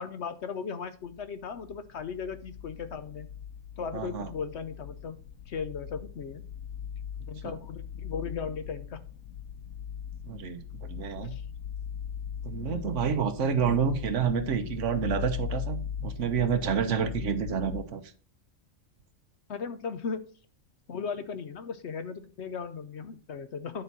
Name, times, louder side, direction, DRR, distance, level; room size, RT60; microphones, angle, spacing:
voice 1, 0.0-3.3 3.8-5.2 5.5-6.4 7.3-9.0 11.2-11.4 12.7-13.0 19.5-20.3 20.9-23.8, left 6 dB, 65° left, 11 dB, 0.9 m, -37 dB
sound 1, 1.1-17.8, left 8 dB, 90° left, 1.0 m, -40 dB
voice 2, 3.9-4.3 7.4-7.5 10.2-10.6 10.9-11.3 12.4-18.0, right 7 dB, 65° right, 8 dB, 1.3 m, -28 dB
10.0 x 4.1 x 6.0 m, 0.39 s
omnidirectional pair, 1.4 m